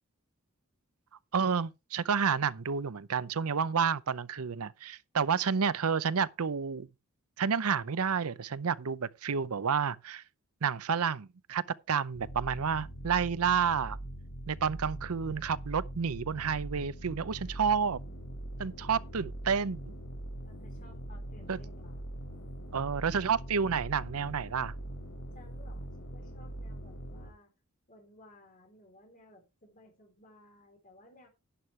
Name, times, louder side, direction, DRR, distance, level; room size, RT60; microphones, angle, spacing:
voice 1, 1.3-6.9 7.4-10.2 10.6-14.0 14.5-18.0 18.6-19.9 21.5-21.6 22.7-24.7, right 6 dB, 85° right, 0.6 m, -30 dB
sound 1, 12.1-27.3, right 1 dB, 60° left, 2.9 m, -42 dB
voice 2, 20.4-22.0 25.3-27.5 27.9-31.3, left 1 dB, 35° left, 3.6 m, -58 dB
11.0 x 10.5 x 3.2 m
head